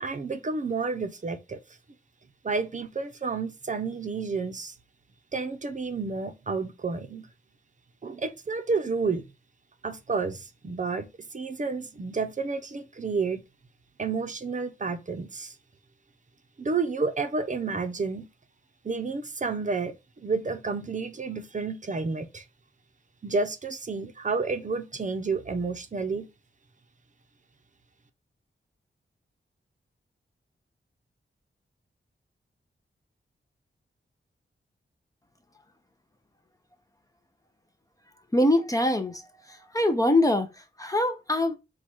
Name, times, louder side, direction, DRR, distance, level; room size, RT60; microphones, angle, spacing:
voice 1, 0.0-1.6 2.4-4.7 5.3-7.3 8.0-9.2 9.8-11.1 11.3-13.4 14.0-15.5 16.6-18.3 18.8-22.4 23.2-26.3, right 4 dB, 40° right, 0.6 m, -30 dB
voice 2, 38.3-39.2 39.7-40.5 40.8-41.6, left 1 dB, 15° left, 0.6 m, -23 dB
4.7 x 2.3 x 4.3 m
wide cardioid pair, 125°, 20 cm